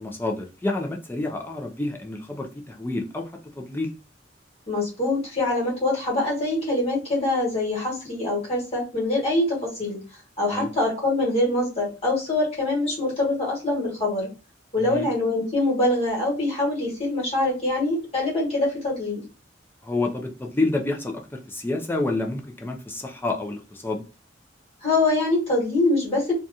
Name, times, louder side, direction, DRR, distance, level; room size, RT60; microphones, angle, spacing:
voice 1, 0.0-3.3 3.6-3.9 10.5-10.7 14.8-15.1 19.8-21.2 21.5-24.0, left 2 dB, 10° left, 0.5 m, -28 dB
voice 2, 4.7-10.0 10.4-14.3 14.7-19.2 24.8-26.3, left 2 dB, 35° left, 1.5 m, -24 dB
2.8 x 2.3 x 2.6 m
head